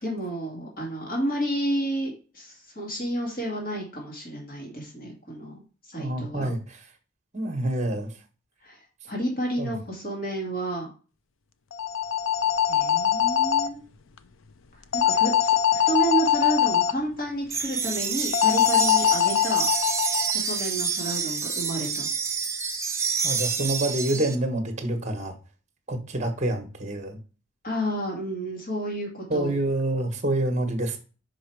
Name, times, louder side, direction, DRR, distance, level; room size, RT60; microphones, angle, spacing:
voice 1, 0.0-5.6 5.9-6.5 8.6-10.9 12.7-13.8 14.7-19.7 20.3-22.1 27.6-29.5, right 1 dB, 45° left, -1 dB, 2.3 m, -31 dB
voice 2, 6.0-6.8 7.3-8.1 9.6-9.7 23.2-25.3 25.9-27.2 29.3-31.0, right 1 dB, 35° right, 6 dB, 1.2 m, -27 dB
sound 1, 11.7-13.7 14.9-16.9 18.3-20.3, left 9 dB, 80° left, 0.5 m, -22 dB
sound 2, 17.5-24.4, right 6 dB, 15° right, 0.6 m, -28 dB
5.4 x 5.0 x 4.6 m, 0.36 s
head